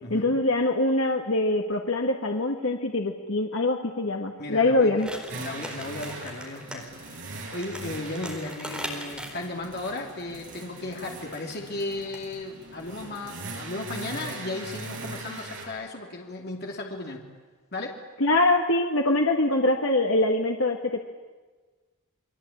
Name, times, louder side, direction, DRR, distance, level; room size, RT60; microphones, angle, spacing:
voice 1, 0.1-5.2 18.2-21.0, left 2 dB, 65° left, 2 dB, 1.8 m, -24 dB
voice 2, 4.4-4.9 5.4-7.2 7.5-17.3 17.7-18.0, left 2 dB, 50° left, 1 dB, 2.9 m, -35 dB
sound 1, 4.9-6.8 7.0-7.1 7.5-9.9 11.3-11.6 12.0-12.2, equal, 5° right, 4.3 m, -39 dB
sound 2, 5.3-15.7, right 2 dB, 60° right, 6.7 m, -40 dB
30.0 x 22.0 x 8.7 m, 1.3 s
head